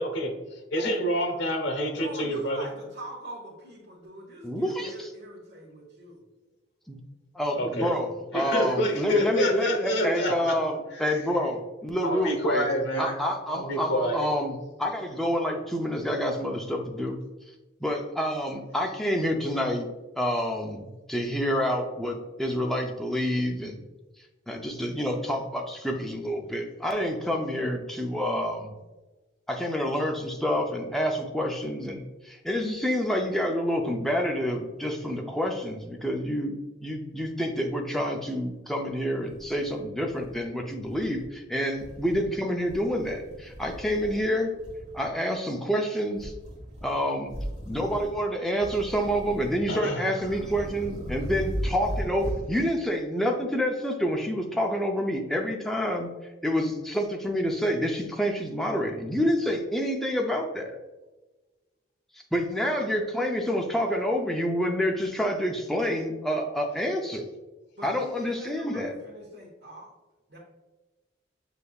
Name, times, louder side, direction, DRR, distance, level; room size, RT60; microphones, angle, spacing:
voice 1, 0.0-2.7 7.5-7.9 8.3-10.6 10.9-11.2 12.0-14.2 49.7-50.0, equal, 70° left, 4 dB, 0.9 m, -28 dB
voice 2, 1.9-6.2 8.4-10.1 67.8-69.9 70.3-70.4, right 1 dB, 65° right, -6 dB, 1.1 m, -43 dB
voice 3, 4.4-4.9 6.9-7.0 7.3-12.7 13.0-17.2 17.8-19.9 20.2-23.8 24.5-28.7 29.5-44.5 44.9-46.3 46.8-47.3 47.7-56.1 56.4-60.8 62.3-67.3 67.8-69.0, equal, ahead, 1 dB, 0.4 m, -28 dB
sound 1, 38.9-39.0 39.3-40.5 40.8-41.3 41.7-42.3 42.6-44.3 44.6-45.1 46.1-46.9 47.3-48.2 48.6-49.8 50.2-52.5, equal, 35° right, 1.3 m, -37 dB
6.8 x 3.3 x 2.3 m, 1.1 s
head